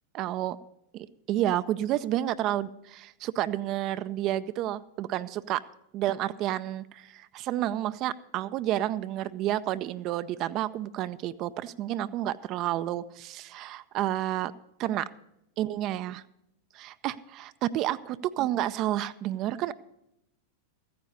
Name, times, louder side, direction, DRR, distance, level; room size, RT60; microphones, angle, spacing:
voice 1, 0.1-0.6 0.9-5.6 5.9-14.5 14.8-15.1 15.6-16.2 16.7-19.7, right 13 dB, 40° right, 13 dB, 0.4 m, -30 dB
14.5 x 9.5 x 5.5 m, 0.82 s
figure-of-eight pair, 90°, 0 cm